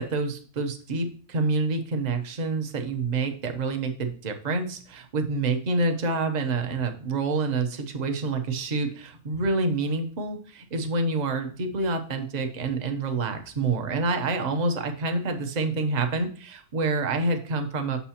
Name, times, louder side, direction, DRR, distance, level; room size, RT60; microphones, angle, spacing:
voice 1, 0.0-18.0, right 3 dB, 40° right, 5 dB, 0.7 m, -27 dB
7.0 x 6.6 x 2.9 m, 0.42 s
omnidirectional pair, 1.6 m